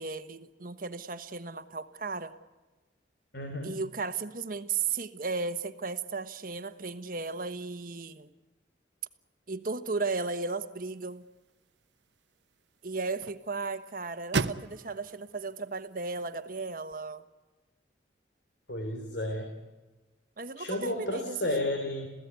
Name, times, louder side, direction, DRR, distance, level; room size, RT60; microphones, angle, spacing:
voice 1, 0.0-2.3 3.6-8.3 9.5-11.2 12.8-17.2 20.4-21.4, right 4 dB, 50° right, 11 dB, 1.2 m, -35 dB
voice 2, 3.3-3.8 18.7-19.5 20.6-22.1, left 1 dB, 70° left, 4 dB, 3.4 m, -32 dB
sound 1, 10.8-16.9, right 4 dB, 80° right, 0.9 m, -39 dB
28.0 x 16.5 x 9.5 m, 1.2 s
head